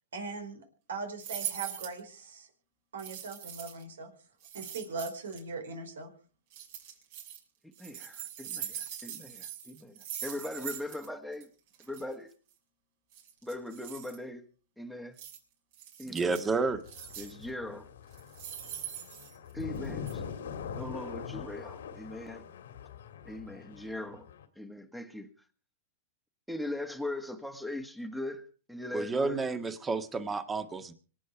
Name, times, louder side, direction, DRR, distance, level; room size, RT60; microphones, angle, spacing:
voice 1, 0.1-2.5 2.9-4.1 4.5-6.1, right 4 dB, 85° right, 4.8 m, -40 dB
sound 1, 1.2-2.0 3.0-3.8 4.4-5.4 6.5-7.4 7.7-11.1 11.3-11.4 11.7-12.0 13.1-14.2 15.2-15.4 15.7-16.5 16.9-17.4 18.1-19.8 20.1-20.2, right 10 dB, 60° right, 6.5 m, -42 dB
voice 2, 7.6-11.5 11.8-12.3 13.4-14.4 14.8-15.2 16.0-16.6 17.2-17.9 19.5-20.2 20.8-22.4 23.2-24.3 24.5-25.3 26.5-29.4, left 1 dB, ahead, 1.6 m, -40 dB
voice 3, 16.1-16.8 28.9-30.9, right 4 dB, 15° right, 1.6 m, -30 dB
sound 2, 16.7-24.5, left 7 dB, 80° left, 2.0 m, -43 dB
26.0 x 8.6 x 4.7 m
hypercardioid pair, 125°, 0 cm